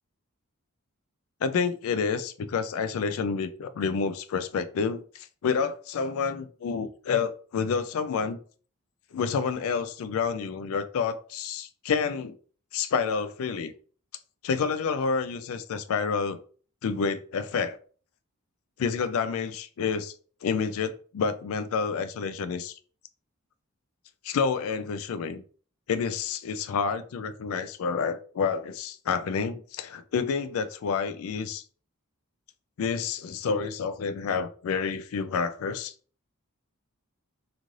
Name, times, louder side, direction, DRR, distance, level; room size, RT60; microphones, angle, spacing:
voice 1, 1.4-8.4 9.1-12.4 12.7-13.7 14.4-16.4 16.8-17.8 18.8-20.1 20.4-22.8 24.2-25.4 25.9-31.6 32.8-35.9, left 5 dB, 65° left, 0.3 m, -29 dB
3.1 x 2.5 x 2.5 m
head